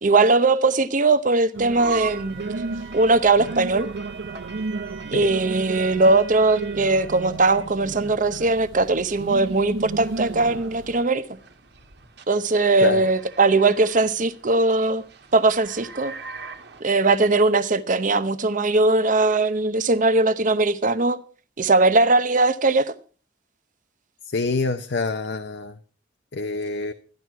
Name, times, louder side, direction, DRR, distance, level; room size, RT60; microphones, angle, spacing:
voice 1, 0.0-2.5 2.9-3.9 5.1-11.2 12.3-15.0 15.3-16.1 16.8-21.2 21.6-22.9, right 3 dB, 45° right, 0.8 m, -20 dB
sound 1, 1.5-11.0, right 3 dB, 90° right, 0.6 m, -34 dB
sound 2, 1.8-16.8, right 6 dB, 60° right, 1.5 m, -41 dB
voice 2, 24.3-25.8 26.3-26.9, left 3 dB, 65° left, 0.8 m, -26 dB
13.5 x 11.0 x 4.6 m
head